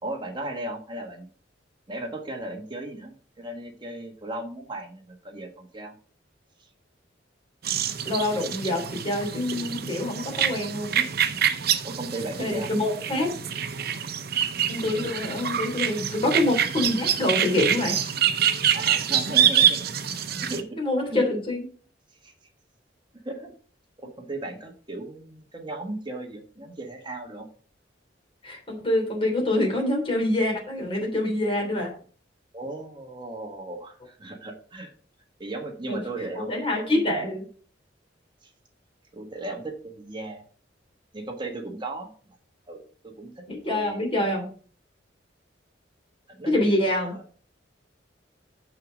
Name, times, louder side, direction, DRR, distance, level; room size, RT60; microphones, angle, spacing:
voice 1, 0.0-1.3 1.9-5.9 6.6-6.7 11.8-12.7 18.7-19.9 20.4-20.8 21.1-21.2 22.2-22.3 23.2-23.5 24.0-27.5 32.5-34.9 35.4-37.3 38.4-38.5 39.1-40.4 41.1-42.1 42.7-44.1 46.3-46.5 47.1-47.2, right 2 dB, 25° right, 3 dB, 1.5 m, -36 dB
sound 1, 7.6-20.6, right 9 dB, 55° right, 0.8 m, -26 dB
voice 2, 8.0-11.0 12.4-13.3 14.7-18.2 20.8-21.6 28.4-31.9 35.9-36.0 36.4-37.4 43.5-44.5 46.4-47.1, left 1 dB, 30° left, 0 dB, 3.2 m, -26 dB
6.9 x 6.5 x 5.1 m, 0.43 s
head